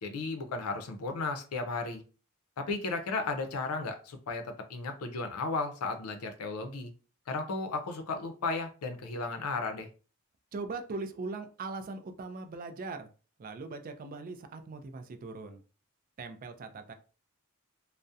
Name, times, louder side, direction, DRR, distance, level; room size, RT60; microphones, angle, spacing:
voice 1, 0.0-2.0 2.6-6.9 7.3-9.9, left 3 dB, 90° left, 6 dB, 0.5 m, -34 dB
voice 2, 10.5-13.1 13.4-15.6 16.2-16.9, right 3 dB, 40° right, 8 dB, 0.3 m, -40 dB
2.3 x 2.0 x 2.6 m, 0.36 s
head